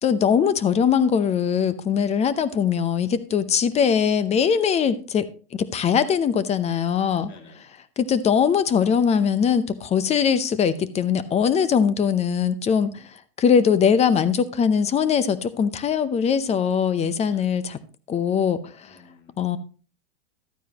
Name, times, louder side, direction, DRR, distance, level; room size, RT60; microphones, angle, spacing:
voice 1, 0.0-5.3 5.7-7.3 8.0-12.9 13.4-17.8 18.1-18.6 19.4-19.6, left 7 dB, 20° left, 0.7 m, -21 dB
voice 2, 7.3-7.8 11.0-11.7 12.7-13.1 17.3-17.5 18.8-19.4, left 3 dB, 40° left, 2.4 m, -53 dB
12.5 x 9.2 x 2.9 m
hypercardioid pair, 120°, 30 cm